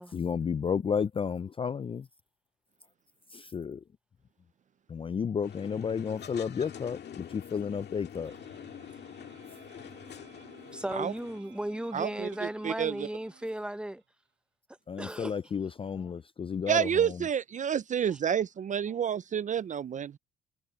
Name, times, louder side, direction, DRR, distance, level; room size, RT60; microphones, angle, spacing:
voice 1, 0.1-2.1 3.3-3.8 4.9-8.3 14.9-17.2, left 6 dB, 25° left, 0.3 m, -32 dB
sound 1, 5.4-11.4, left 9 dB, 60° left, 1.8 m, -46 dB
sound 2, 8.2-14.0, right 10 dB, 70° right, 7.3 m, -57 dB
voice 2, 10.7-14.0 15.0-15.3 15.9-16.1 18.8-18.9, right 1 dB, 5° right, 0.8 m, -36 dB
voice 3, 11.9-13.1 16.7-20.1, right 8 dB, 40° right, 0.4 m, -29 dB
cardioid pair, 90°, 20 cm